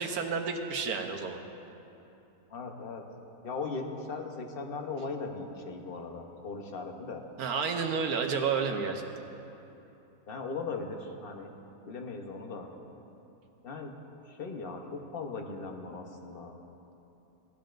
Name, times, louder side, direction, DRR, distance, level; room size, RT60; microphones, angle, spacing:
voice 1, 0.0-1.4 7.4-9.1, right 5 dB, 85° right, 4 dB, 1.3 m, -30 dB
voice 2, 2.5-3.1 3.4-7.2 10.3-11.5 11.9-12.7 13.6-13.9 14.2-16.5, left 4 dB, 45° left, 3 dB, 1.0 m, -38 dB
18.0 x 12.5 x 2.5 m, 2.9 s
omnidirectional pair, 1.5 m